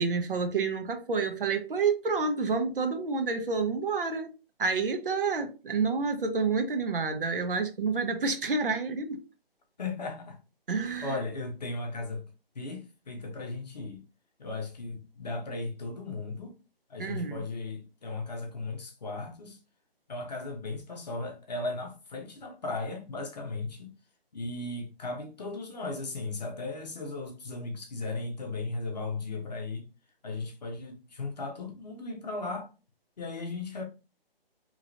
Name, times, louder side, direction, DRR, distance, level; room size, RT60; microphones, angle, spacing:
voice 1, 0.0-4.3 4.6-9.2 10.7-11.2 17.0-17.4, right 4 dB, 60° right, 0.7 m, -29 dB
voice 2, 9.8-10.4 11.0-12.2 12.5-14.0 14.4-16.6 16.9-19.6 20.1-23.9 24.3-29.9 30.2-32.7 33.2-33.8, left 3 dB, 45° left, 0.8 m, -36 dB
3.0 x 2.9 x 2.4 m
hypercardioid pair, 165°, 30 cm